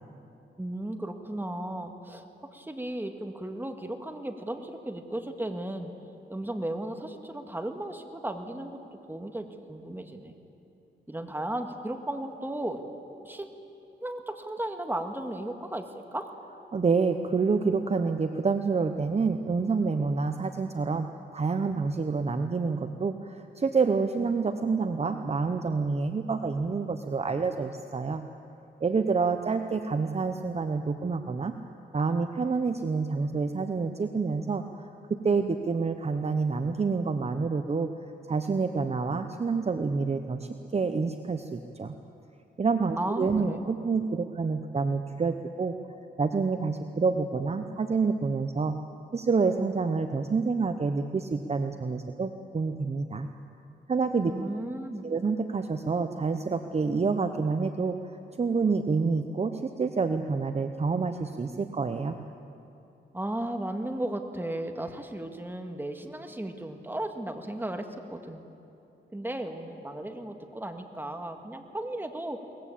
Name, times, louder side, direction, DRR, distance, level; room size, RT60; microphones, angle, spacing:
voice 1, 0.6-2.2 2.5-5.9 6.3-10.3 11.1-12.8 13.2-13.5 14.0-16.3 43.0-43.6 54.2-55.0 63.1-68.4 69.1-72.4, right 1 dB, 10° right, 5 dB, 1.9 m, -35 dB
voice 2, 16.7-21.1 21.3-28.2 28.8-31.5 31.9-37.9 38.3-41.9 42.6-45.7 46.2-48.8 49.1-53.3 53.9-54.3 55.0-58.0 58.4-62.2, right 4 dB, 35° right, 7 dB, 0.9 m, -28 dB
22.5 x 19.5 x 8.6 m, 2.8 s
cardioid pair, 100°, 19 cm